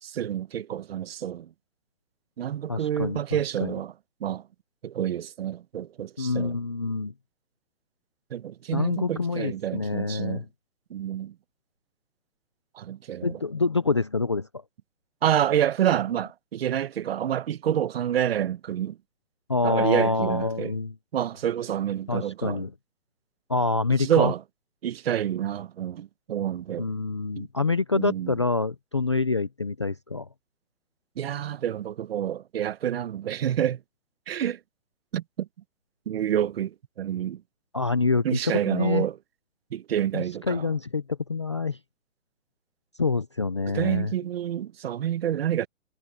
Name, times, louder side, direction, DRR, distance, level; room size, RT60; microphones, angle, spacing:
voice 1, 0.0-1.5 2.4-3.9 4.2-4.4 4.8-6.6 8.3-10.4 10.9-11.3 12.7-13.4 15.2-19.0 19.6-20.7 21.1-22.7 24.0-24.4 24.8-26.9 27.4-27.5 27.9-28.4 31.2-33.8 34.3-34.6 35.1-35.5 36.1-37.4 38.2-39.2 39.7-40.7 43.7-45.7, right 10 dB, 45° right, 1.1 m, -28 dB
voice 2, 2.7-3.2 3.6-3.7 6.2-7.1 8.7-10.4 13.2-14.5 19.5-20.9 22.1-22.7 23.5-24.3 26.8-30.3 37.7-38.2 38.7-39.0 40.1-41.8 43.0-44.1, left 3 dB, 20° left, 0.4 m, -26 dB
hypercardioid pair, 155°, 41 cm